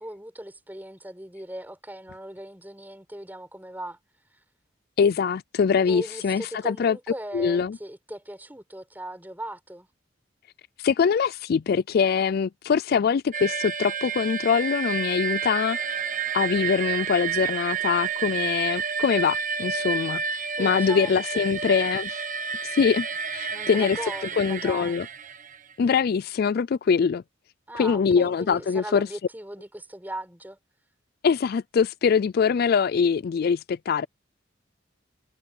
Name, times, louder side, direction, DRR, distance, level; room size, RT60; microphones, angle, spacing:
voice 1, 0.0-4.0 5.9-9.9 20.6-21.6 23.5-25.1 27.7-30.6, right 1 dB, 10° right, 4.9 m, -38 dB
voice 2, 5.0-7.0 7.3-7.8 10.8-16.1 16.3-22.2 22.7-23.1 23.3-24.0 24.4-25.1 25.8-27.2 27.7-29.1 31.2-34.1, left 6 dB, 50° left, 0.3 m, -23 dB
sound 1, 13.3-25.7, right 6 dB, 45° right, 1.2 m, -30 dB
head